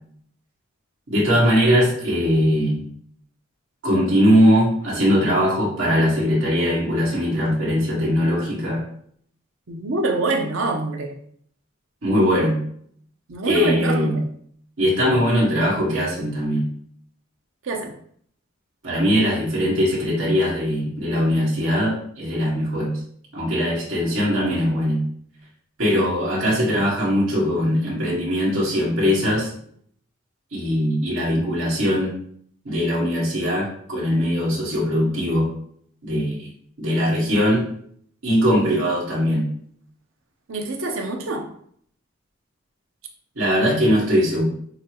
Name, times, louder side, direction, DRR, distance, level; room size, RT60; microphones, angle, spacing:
voice 1, 1.1-2.8 3.8-8.8 12.0-12.6 13.5-14.2 14.8-16.7 18.8-22.9 23.3-25.0 25.8-29.5 30.5-32.2 32.7-35.5 36.0-36.5 36.8-37.6 38.2-39.4 43.4-44.4, equal, 85° right, -6 dB, 1.8 m, -20 dB
voice 2, 9.7-11.2 13.3-14.2 17.6-17.9 25.9-26.0 40.5-41.5, right 2 dB, 70° right, 4 dB, 0.7 m, -25 dB
7.0 x 2.3 x 3.0 m, 0.63 s
head